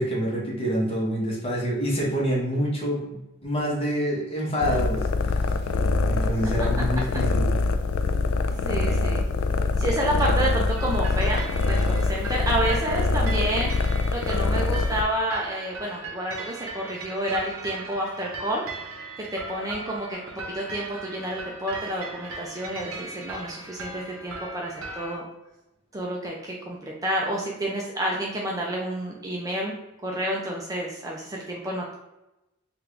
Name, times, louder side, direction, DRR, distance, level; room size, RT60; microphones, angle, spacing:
voice 1, 0.0-5.5 6.0-7.5, equal, 25° left, -4 dB, 1.0 m, -27 dB
sound 1, 4.6-15.0, left 3 dB, 70° left, 0.3 m, -24 dB
voice 2, 8.6-9.2 9.8-13.7 14.1-18.6 19.3-25.3 25.9-29.7 30.0-31.9, right 1 dB, 15° right, -2 dB, 0.4 m, -29 dB
sound 2, 10.8-25.2, right 3 dB, 65° right, 0.7 m, -38 dB
3.4 x 2.5 x 3.3 m, 0.94 s
head